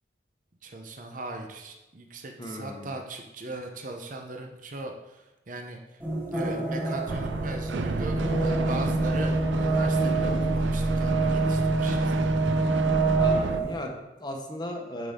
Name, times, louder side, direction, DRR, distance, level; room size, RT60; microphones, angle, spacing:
voice 1, 0.6-5.2 5.5-5.8 6.3-12.6, right 2 dB, 45° right, 3 dB, 0.8 m, -39 dB
voice 2, 2.4-2.9 8.7-8.9 13.1-15.1, left 1 dB, 25° left, 1 dB, 1.0 m, -36 dB
sound 1, 6.0-13.7, right 2 dB, 10° right, 1.9 m, -26 dB
sound 2, 7.1-13.6, right 3 dB, 80° right, 0.5 m, -31 dB
9.6 x 5.2 x 3.7 m, 1.0 s
head